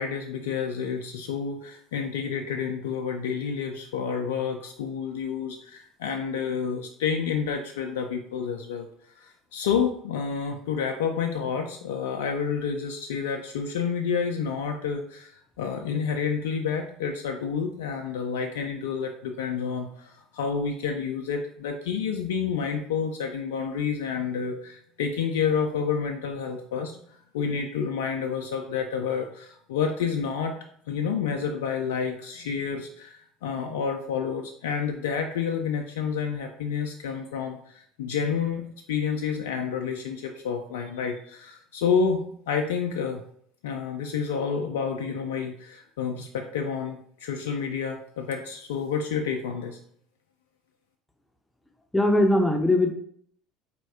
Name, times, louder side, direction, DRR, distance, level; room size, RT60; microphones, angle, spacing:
voice 1, 0.0-8.9 9.2-27.0 27.3-30.5 30.9-43.2 43.6-49.8, left 6 dB, 70° left, 3 dB, 0.3 m, -29 dB
voice 2, 51.9-52.9, left 1 dB, 5° left, 3 dB, 0.6 m, -20 dB
4.2 x 2.6 x 3.4 m, 0.64 s
figure-of-eight pair, 65°, 0 cm